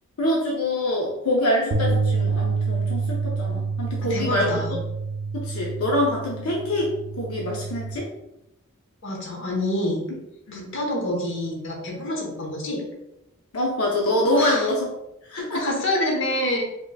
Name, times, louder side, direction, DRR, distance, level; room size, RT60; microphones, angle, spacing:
voice 1, 0.2-4.6 5.3-8.1 10.1-10.2 10.5-10.7 13.5-14.9 15.3-15.6, left 1 dB, 90° left, -2 dB, 0.7 m, -25 dB
sound 1, 1.7-8.0, right 4 dB, 80° right, 0.4 m, -27 dB
voice 2, 4.1-4.8 9.0-10.0 10.5-12.8 14.3-14.7 15.4-16.6, left 1 dB, 60° left, -1 dB, 1.0 m, -27 dB
4.5 x 3.0 x 2.3 m, 0.87 s
head